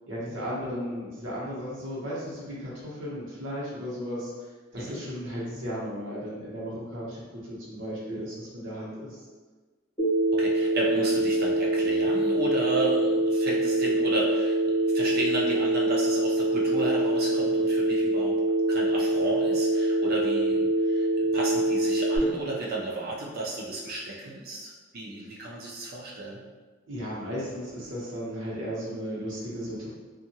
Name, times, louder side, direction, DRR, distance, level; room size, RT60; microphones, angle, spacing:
voice 1, 0.1-4.3 4.7-9.2 26.9-29.9, equal, 70° right, -6 dB, 1.0 m, -35 dB
Telephone, 10.0-22.2, right 2 dB, 25° left, 1.2 m, -24 dB
voice 2, 10.3-18.4 18.7-26.4, right 2 dB, 50° right, -3 dB, 0.6 m, -33 dB
2.7 x 2.4 x 2.8 m, 1.3 s
head